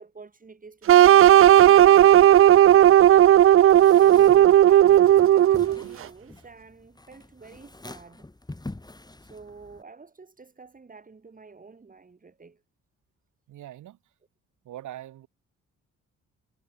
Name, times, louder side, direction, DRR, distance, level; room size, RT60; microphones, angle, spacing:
voice 1, 0.0-3.3 3.9-8.3 9.2-12.6, right 4 dB, 25° right, 4.4 m, -47 dB
sound 1, 0.9-5.8, right 12 dB, 45° right, 0.5 m, -14 dB
sound 2, 3.7-9.8, left 2 dB, 15° left, 7.9 m, -45 dB
voice 2, 13.5-14.0 14.7-15.3, right 13 dB, 80° right, 5.2 m, -41 dB
cardioid pair, 90°, 30 cm